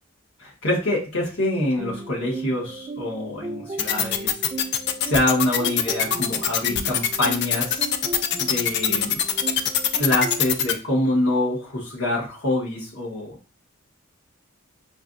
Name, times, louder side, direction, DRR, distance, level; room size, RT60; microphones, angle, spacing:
voice 1, 0.4-4.3 5.0-7.9 8.4-9.2 10.0-13.3, left 1 dB, 85° left, -4 dB, 1.5 m, -25 dB
sound 1, 1.8-10.5, right 3 dB, 25° right, 0.4 m, -36 dB
sound 2, 3.8-10.7, left 9 dB, 55° left, 0.4 m, -22 dB
4.6 x 2.4 x 2.6 m, 0.34 s
head